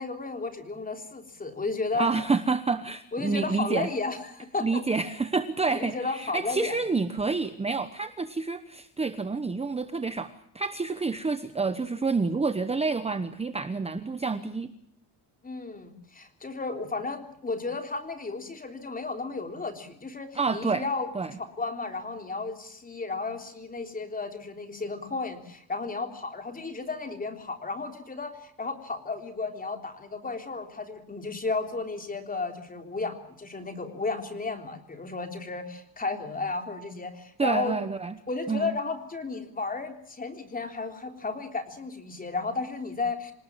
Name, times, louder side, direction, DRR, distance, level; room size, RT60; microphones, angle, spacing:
voice 1, 0.0-2.1 3.1-4.8 5.7-6.8 15.4-21.1 21.6-37.8 38.3-43.3, left 3 dB, 20° left, 6 dB, 3.5 m, -33 dB
voice 2, 1.9-3.9 4.6-14.7 20.3-20.8 21.1-21.3 37.4-38.2 38.5-38.8, right 4 dB, 15° right, 10 dB, 1.1 m, -28 dB
27.5 x 18.5 x 7.4 m, 0.70 s
cardioid pair, 165°, 43 cm